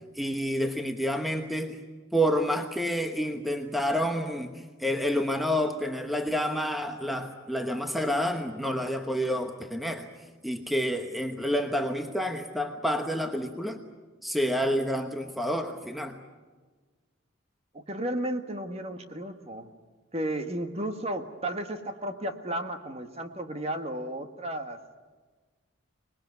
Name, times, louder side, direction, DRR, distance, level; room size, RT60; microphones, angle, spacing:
voice 1, 0.1-1.8 2.1-10.1 10.4-13.8 14.2-16.2, equal, ahead, 5 dB, 1.0 m, -29 dB
voice 2, 17.7-19.7 20.1-24.8, right 1 dB, 30° right, 7 dB, 1.5 m, -33 dB
25.5 x 20.5 x 9.4 m, 1.4 s
head